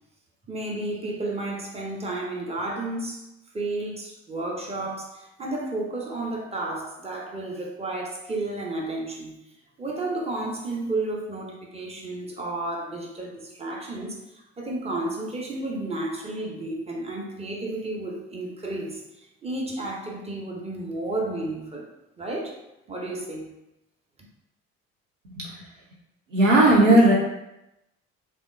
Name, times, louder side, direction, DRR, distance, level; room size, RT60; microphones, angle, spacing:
voice 1, 0.5-3.2 3.5-9.4 9.8-21.9 22.2-22.6 22.9-23.5, right 2 dB, 15° right, -1 dB, 0.9 m, -32 dB
voice 2, 26.3-27.1, right 1 dB, 90° right, -3 dB, 0.8 m, -16 dB
3.4 x 3.0 x 2.7 m, 0.89 s
hypercardioid pair, 55°, 37 cm